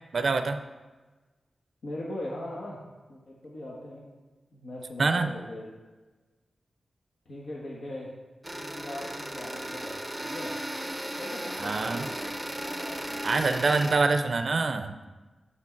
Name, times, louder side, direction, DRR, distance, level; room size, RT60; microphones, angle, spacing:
voice 1, 0.1-0.6 5.0-5.3 11.6-12.1 13.2-15.0, right 3 dB, 55° right, 8 dB, 0.4 m, -25 dB
voice 2, 1.8-2.8 3.1-4.1 4.5-5.7 7.2-8.1 8.5-10.6 11.2-13.6, left 1 dB, 80° left, -4 dB, 1.3 m, -40 dB
sound 1, 8.4-13.9, right 1 dB, 5° right, 0.6 m, -36 dB
7.9 x 6.0 x 4.5 m, 1.2 s
wide cardioid pair, 140°, 0 cm